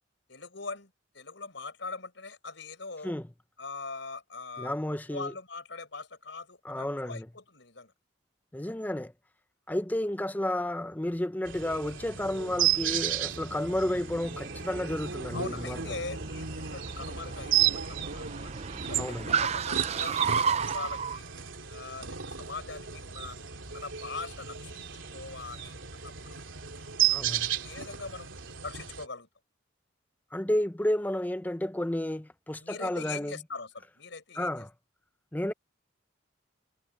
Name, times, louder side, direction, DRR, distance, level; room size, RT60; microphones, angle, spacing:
voice 1, 0.3-3.1 3.6-4.8 5.1-7.9 15.3-18.5 18.9-21.3 21.7-23.4 23.7-24.9 25.1-26.4 27.0-28.3 28.6-29.3 32.6-34.6, left 4 dB, 70° left, 5.3 m, -42 dB
voice 2, 4.6-5.3 6.6-7.3 8.5-9.1 9.7-15.9 19.0-19.3 27.1-27.5 30.3-33.4 34.4-34.7 35.3-35.5, left 1 dB, 10° left, 0.6 m, -31 dB
sound 1, 11.5-29.1, right 10 dB, 90° right, 3.0 m, -33 dB
Car, 12.3-21.2, right 6 dB, 35° right, 0.5 m, -34 dB
head